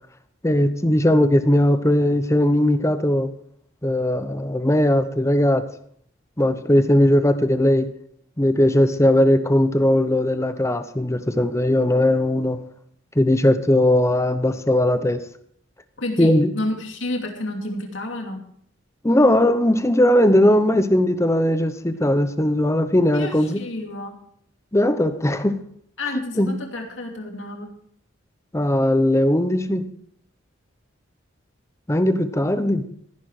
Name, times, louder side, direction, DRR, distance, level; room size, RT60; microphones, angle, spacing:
voice 1, 0.4-3.3 3.8-5.6 6.4-7.9 8.4-12.6 13.2-15.2 16.2-16.5 19.0-23.6 24.7-25.6 26.4-26.6 28.5-29.9 31.9-32.9, left 1 dB, 15° left, 10 dB, 0.9 m, -18 dB
voice 2, 16.0-18.4 23.1-24.2 26.0-27.7, left 1 dB, 70° left, 2 dB, 2.7 m, -30 dB
15.0 x 10.5 x 4.9 m, 0.64 s
head